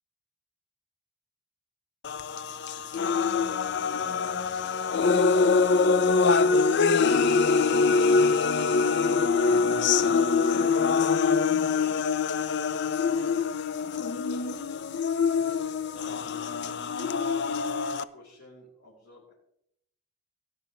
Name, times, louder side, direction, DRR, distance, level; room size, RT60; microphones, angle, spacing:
sound 1, 2.0-18.0, left 4 dB, 55° left, 0.5 m, -24 dB
voice 1, 14.1-14.9 15.3-17.5 17.9-19.3, left 1 dB, 75° left, -7 dB, 4.1 m, -52 dB
18.5 x 10.5 x 3.1 m, 0.74 s
head